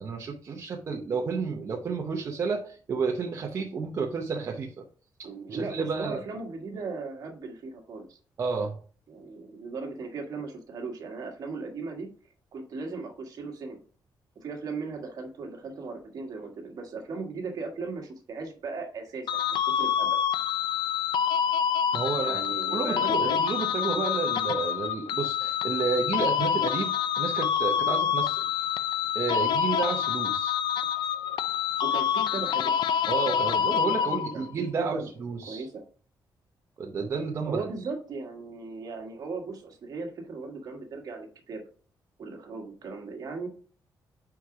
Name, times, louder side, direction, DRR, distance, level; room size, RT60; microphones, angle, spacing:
voice 1, 0.0-4.8 5.2-6.2 8.4-8.8 21.9-22.4 22.7-28.7 29.1-30.6 33.1-35.7 36.8-37.7, right 5 dB, 40° right, 0 dB, 0.7 m, -31 dB
voice 2, 5.2-8.2 9.1-12.1 12.5-13.8 14.4-20.1 22.2-23.4 31.8-32.8 33.5-34.5 34.8-35.1 35.5-35.8 37.5-41.6 42.2-43.5, right 4 dB, 55° right, 2 dB, 1.5 m, -37 dB
sound 1, 19.3-34.5, left 9 dB, 80° left, 0.4 m, -27 dB
4.7 x 4.6 x 4.7 m, 0.42 s
wide cardioid pair, 180°, 8 cm